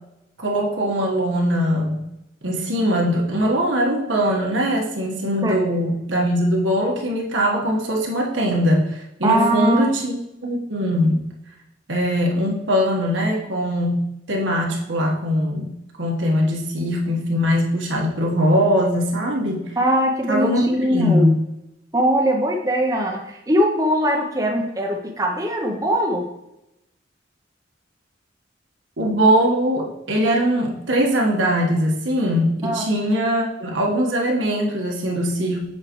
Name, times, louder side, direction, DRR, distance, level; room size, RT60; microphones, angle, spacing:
voice 1, 0.4-2.0 2.4-10.2 10.4-11.2 11.9-14.0 14.3-15.7 16.0-19.6 20.3-21.3 29.0-35.6, equal, 80° right, -1 dB, 1.4 m, -21 dB
voice 2, 9.2-9.9 19.8-21.3 21.9-26.2 32.6-32.8, equal, 20° right, 1 dB, 0.7 m, -21 dB
7.7 x 5.6 x 3.1 m, 0.90 s
head